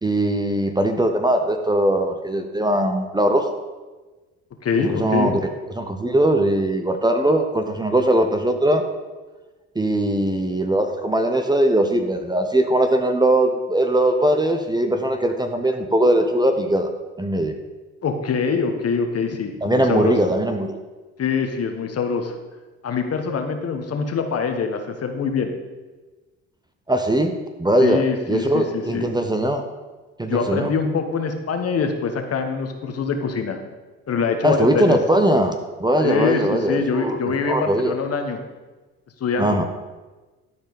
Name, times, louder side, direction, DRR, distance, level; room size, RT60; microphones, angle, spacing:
voice 1, 0.0-3.5 4.8-5.4 5.8-8.8 9.7-16.9 17.2-17.5 19.6-20.8 26.9-27.3 27.6-28.0 28.3-29.6 30.2-30.7 34.4-37.2 37.4-37.9 39.4-39.6, right 1 dB, 10° right, 6 dB, 0.8 m, -20 dB
voice 2, 4.6-5.3 18.0-20.2 21.2-22.3 22.8-25.6 27.8-29.1 30.3-33.6 34.1-35.0 36.0-38.4 39.2-39.6, left 5 dB, 45° left, 5 dB, 1.3 m, -24 dB
12.0 x 4.4 x 5.2 m, 1.2 s
hypercardioid pair, 65°, 34 cm